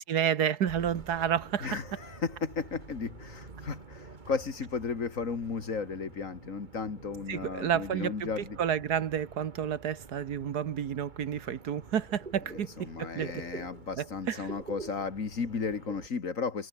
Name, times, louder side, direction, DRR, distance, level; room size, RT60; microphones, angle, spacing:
voice 1, 0.1-1.8 7.3-13.4 14.0-14.5, right 8 dB, 80° right, 1.7 m, -30 dB
sound 1, 0.7-16.1, right 3 dB, 30° right, 1.8 m, -48 dB
voice 2, 1.6-8.6 12.5-16.7, left 5 dB, 55° left, 2.3 m, -34 dB
omnidirectional pair, 1.7 m